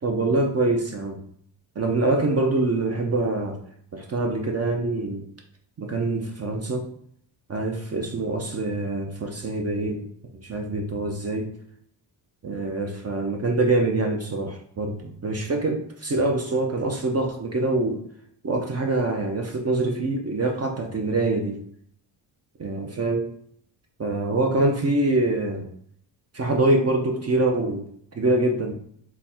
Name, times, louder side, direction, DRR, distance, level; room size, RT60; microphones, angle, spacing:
voice 1, 0.0-1.2 1.8-3.6 3.9-5.2 5.8-6.9 7.5-10.0 10.4-11.5 12.4-18.0 18.4-21.6 22.6-23.3 24.0-25.7 26.3-27.8 28.2-28.7, right 2 dB, 35° right, 2 dB, 0.7 m, -24 dB
4.1 x 2.2 x 4.2 m, 0.64 s
cardioid pair, 85°, 46 cm